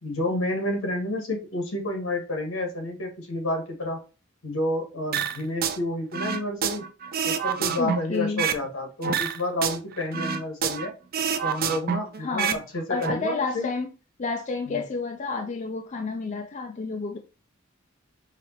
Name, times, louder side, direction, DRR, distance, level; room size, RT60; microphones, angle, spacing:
voice 1, 0.0-4.0 4.4-6.8 7.2-10.9 11.4-13.7 14.7-14.8, left 1 dB, 80° left, 1.7 m, -30 dB
sound 1, 5.1-5.8 6.1-8.7 9.0-10.9 11.1-12.6 12.9-13.1, right 7 dB, 45° right, 0.4 m, -27 dB
voice 2, 7.8-8.5 12.2-12.6 12.9-13.9 14.2-17.2, left 4 dB, 35° left, 0.4 m, -30 dB
4.9 x 2.9 x 2.8 m
head